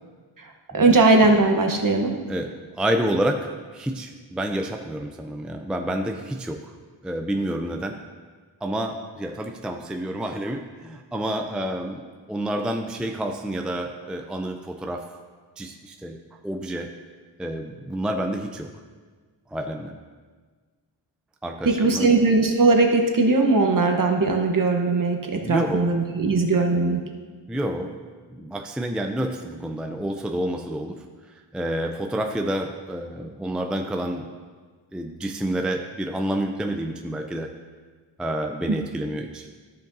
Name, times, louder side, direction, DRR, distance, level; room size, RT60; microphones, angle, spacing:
voice 1, 0.7-2.1 21.6-27.0 38.7-38.8, right 3 dB, 45° right, 3 dB, 1.1 m, -19 dB
voice 2, 2.3-6.7 7.0-8.0 8.6-15.0 15.6-16.2 16.4-16.9 17.4-18.7 19.5-19.9 21.4-22.1 25.4-25.9 27.5-28.0 28.3-31.0 31.5-34.3 34.9-37.5 38.2-39.5, right 1 dB, ahead, 4 dB, 0.4 m, -29 dB
14.5 x 5.1 x 2.7 m, 1.5 s
wide cardioid pair, 95°, 45 cm